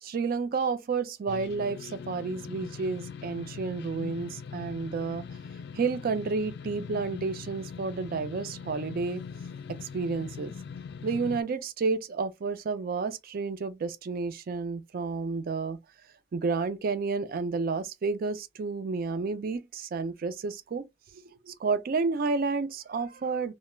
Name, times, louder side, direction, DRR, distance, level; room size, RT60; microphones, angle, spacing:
voice 1, 0.0-5.2 5.7-9.2 9.8-10.5 11.0-15.8 16.3-20.8 21.1-23.5, right 4 dB, 50° right, 0.4 m, -31 dB
sound 1, 1.3-11.4, left 6 dB, 60° left, 0.3 m, -41 dB
2.2 x 2.0 x 3.0 m
head